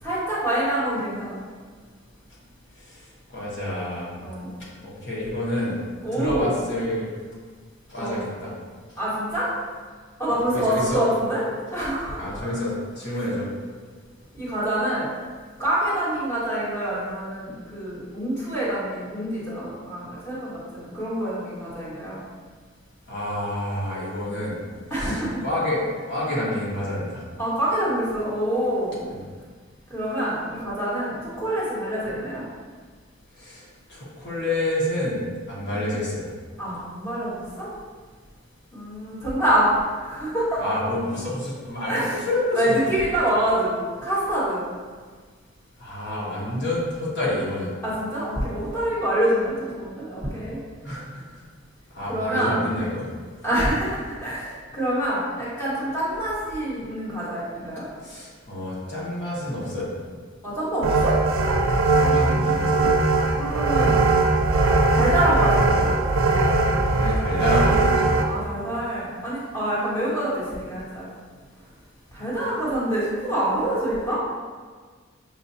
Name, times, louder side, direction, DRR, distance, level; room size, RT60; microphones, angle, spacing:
voice 1, 0.0-1.4 4.2-4.5 6.0-6.5 8.0-8.2 9.0-9.5 10.2-11.4 11.7-12.5 13.1-13.2 14.3-15.1 15.6-22.2 24.9-25.4 27.4-29.0 29.9-32.4 35.7-35.9 36.6-37.7 38.7-40.7 41.9-42.2 42.5-44.6 47.8-50.6 52.1-52.6 53.4-57.9 60.4-61.2 62.8-62.9 63.3-64.0 64.9-65.9 68.3-71.1 72.1-74.2, right 1 dB, 10° left, -10 dB, 1.5 m, -26 dB
voice 2, 3.3-4.1 4.8-5.8 6.1-7.1 7.9-8.5 10.5-11.0 12.2-12.7 13.0-13.5 23.1-24.6 25.0-27.2 29.1-29.2 33.4-33.6 33.9-35.2 35.5-36.3 40.6-42.8 45.8-47.7 50.8-51.2 51.9-53.1 58.0-59.9 61.8-62.8 66.6-68.1, left 1 dB, 60° left, -7 dB, 1.3 m, -28 dB
sound 1, 60.8-68.2, right 2 dB, 75° right, 0.5 m, -20 dB
5.7 x 2.5 x 2.7 m, 1.5 s
head